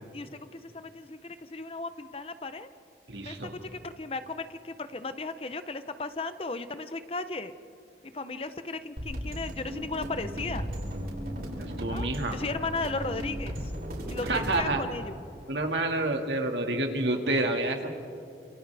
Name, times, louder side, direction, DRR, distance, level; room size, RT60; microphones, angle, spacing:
voice 1, 0.1-2.7 3.2-7.5 8.1-10.7 11.9-13.6 14.1-15.2, left 3 dB, 35° left, 11 dB, 0.7 m, -36 dB
voice 2, 3.1-3.5 11.6-12.4 14.3-14.8 15.5-18.0, right 2 dB, 85° right, 3 dB, 2.0 m, -29 dB
sound 1, 9.0-14.6, equal, 60° right, 6.2 m, -35 dB
29.0 x 28.0 x 3.4 m, 2.5 s
head